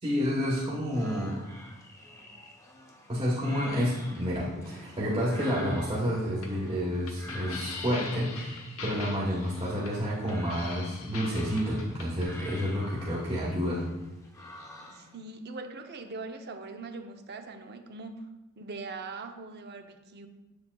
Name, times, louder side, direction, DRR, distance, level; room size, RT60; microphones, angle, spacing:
voice 1, 0.0-1.4 3.1-13.9, equal, 25° right, -6 dB, 1.2 m, -29 dB
sound 1, 0.9-15.2, left 1 dB, 15° left, 0.9 m, -48 dB
sound 2, 6.3-12.2, left 4 dB, 70° left, 1.0 m, -42 dB
voice 2, 14.9-18.3 18.6-20.3, right 3 dB, 50° right, 6 dB, 0.6 m, -41 dB
7.7 x 6.9 x 2.3 m, 1.1 s
head